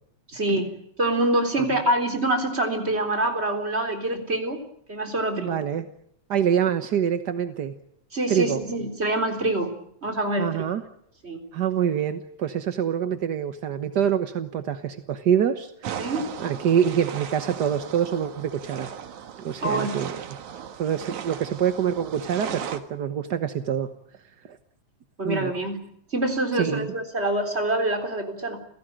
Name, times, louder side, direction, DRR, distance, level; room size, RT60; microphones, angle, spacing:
voice 1, 0.3-0.7 1.0-4.6 4.9-5.6 8.1-9.7 10.0-10.6 11.2-11.4 16.0-16.3 19.6-20.0 25.2-25.8 26.1-28.6, right 1 dB, 20° right, 4 dB, 3.9 m, -25 dB
voice 2, 5.3-5.8 6.3-7.7 8.3-8.6 10.4-10.8 11.5-16.1 16.4-18.9 19.4-20.3 20.8-23.9 24.4-24.6 25.2-25.5 26.5-26.9, right 8 dB, 55° right, 8 dB, 1.1 m, -25 dB
sound 1, 15.8-22.8, right 8 dB, 85° right, 3.0 m, -37 dB
30.0 x 17.0 x 8.9 m, 0.71 s
omnidirectional pair, 3.3 m